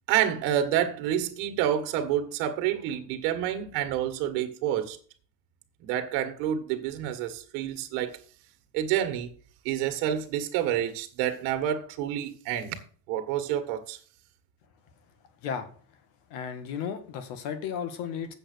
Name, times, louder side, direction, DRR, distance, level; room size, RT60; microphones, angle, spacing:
voice 1, 0.1-5.0 5.8-8.2 8.7-9.3 9.6-12.8 13.1-14.0, right 10 dB, 80° right, 1.6 m, -28 dB
voice 2, 16.3-18.3, left 7 dB, 85° left, 2.0 m, -34 dB
7.9 x 7.2 x 6.6 m
cardioid pair, 140°, 42 cm